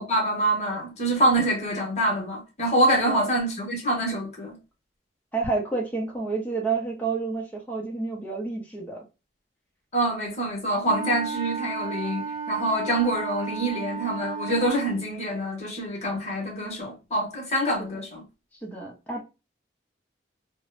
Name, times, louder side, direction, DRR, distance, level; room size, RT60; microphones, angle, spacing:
voice 1, 0.0-4.6 9.9-18.3, right 1 dB, 35° left, 1.0 m, -25 dB
voice 2, 5.3-9.0 17.8-18.0 18.6-19.2, right 4 dB, 10° left, 0.7 m, -30 dB
Wind instrument woodwind instrument, 10.9-15.1, right 5 dB, 30° right, 0.5 m, -33 dB
2.6 x 2.1 x 2.4 m
head